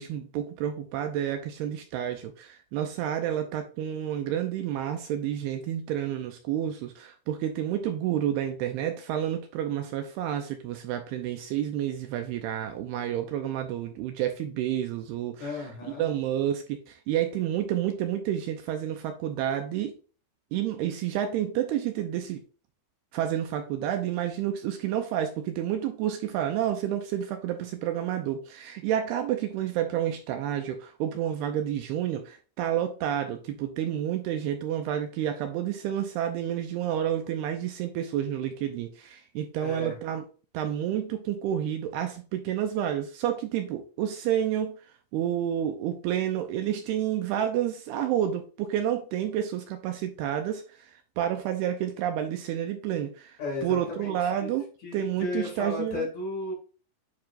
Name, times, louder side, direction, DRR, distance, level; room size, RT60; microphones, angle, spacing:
voice 1, 0.0-20.0 20.5-22.4 23.1-40.2 40.5-44.8 45.1-53.4 53.6-56.1, right 10 dB, 85° right, 6 dB, 2.3 m, -30 dB
voice 2, 15.4-16.0 39.6-39.9 53.4-54.5 54.8-56.5, left 2 dB, 50° left, -2 dB, 3.3 m, -34 dB
9.4 x 4.7 x 2.5 m, 0.36 s
omnidirectional pair, 5.1 m